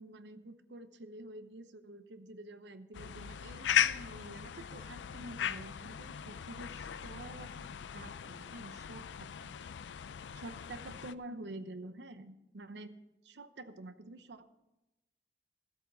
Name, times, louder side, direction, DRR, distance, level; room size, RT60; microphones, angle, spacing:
voice 1, 0.0-7.5 7.9-9.5 10.3-13.0 13.2-14.6, right 2 dB, 80° right, 10 dB, 0.9 m, -48 dB
sound 1, 2.9-11.1, left 9 dB, 85° left, 0.4 m, -37 dB
14.5 x 8.1 x 5.6 m, 0.96 s
head